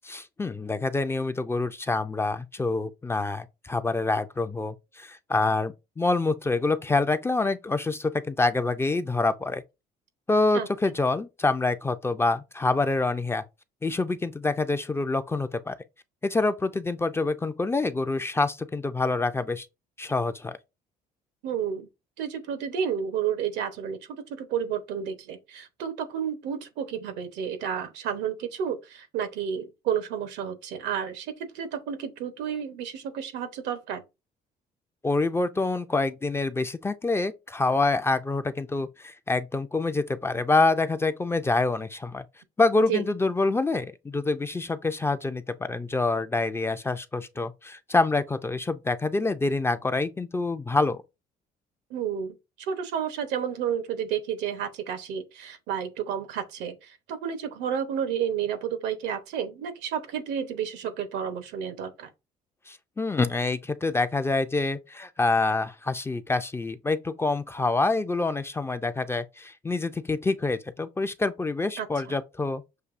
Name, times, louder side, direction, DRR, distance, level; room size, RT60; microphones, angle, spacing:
voice 1, 0.0-9.6 10.3-13.4 13.8-15.8 16.2-19.7 20.0-20.6 35.0-42.2 42.6-51.0 62.7-72.6, left 3 dB, 15° left, 0.3 m, -26 dB
voice 2, 21.4-21.9 22.2-34.0 42.9-43.0 51.9-62.1 71.8-71.9, right 8 dB, 90° right, 0.9 m, -31 dB
6.6 x 2.6 x 2.5 m
cardioid pair, 110°, 17 cm